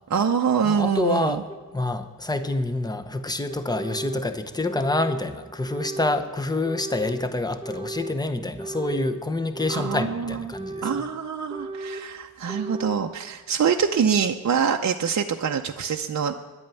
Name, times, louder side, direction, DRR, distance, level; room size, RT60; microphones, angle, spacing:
voice 1, 0.1-1.4 9.7-10.4 10.8-16.3, right 7 dB, 50° right, 4 dB, 0.6 m, -25 dB
voice 2, 0.6-1.4 1.7-10.9, left 2 dB, 10° left, 8 dB, 0.8 m, -27 dB
sound 1, 1.5-1.6 2.5-2.6 3.5-4.3 4.7-5.2 5.7-6.2 6.6-7.2 7.6-8.2 8.6-9.1 9.5-10.1 10.5-11.1 11.5-12.1 12.5-13.0, right 2 dB, 15° right, 0.9 m, -35 dB
11.0 x 8.7 x 9.1 m, 1.4 s
wide cardioid pair, 95°, 35 cm